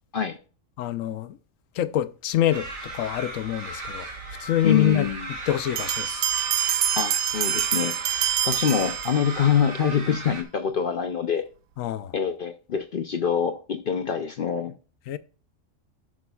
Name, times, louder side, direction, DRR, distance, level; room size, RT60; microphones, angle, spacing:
voice 1, 0.8-1.4 1.8-4.1 4.4-5.1 5.5-6.3 11.8-12.1 15.1-15.2, left 12 dB, 90° left, 1.1 m, -26 dB
sound 1, 2.5-10.4, right 2 dB, 65° right, 2.0 m, -37 dB
voice 2, 4.6-5.3 7.0-8.2 8.4-11.5 12.1-14.7, left 7 dB, 55° left, 0.7 m, -25 dB
sound 2, 5.8-9.5, right 10 dB, 80° right, 1.0 m, -26 dB
15.5 x 6.2 x 2.3 m
omnidirectional pair, 1.3 m